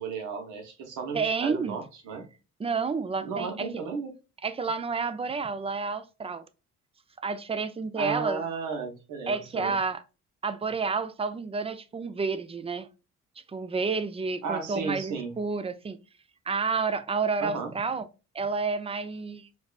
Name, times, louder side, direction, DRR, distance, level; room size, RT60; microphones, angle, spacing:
voice 1, 0.0-2.3 3.2-4.1 8.0-9.7 14.4-15.3 17.4-17.7, right 5 dB, 80° right, 1.0 m, -34 dB
voice 2, 1.1-1.8 2.6-3.7 4.4-6.4 7.2-8.4 9.3-10.0 10.4-12.9 13.5-16.0 16.5-18.1 18.3-19.5, right 4 dB, 20° right, 0.3 m, -30 dB
4.5 x 2.4 x 2.3 m
cardioid pair, 90°, 30 cm